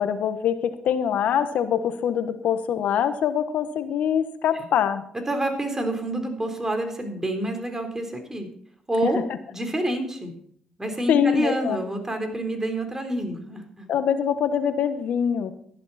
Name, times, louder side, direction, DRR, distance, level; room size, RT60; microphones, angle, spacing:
voice 1, 0.0-5.0 9.0-9.1 11.1-11.8 13.9-15.5, left 8 dB, 75° left, 10 dB, 1.3 m, -24 dB
voice 2, 5.3-8.5 8.9-9.2 9.5-10.3 10.8-13.8, right 1 dB, 20° right, 5 dB, 4.0 m, -28 dB
14.0 x 11.5 x 4.3 m, 0.63 s
supercardioid pair, 60°, 3 cm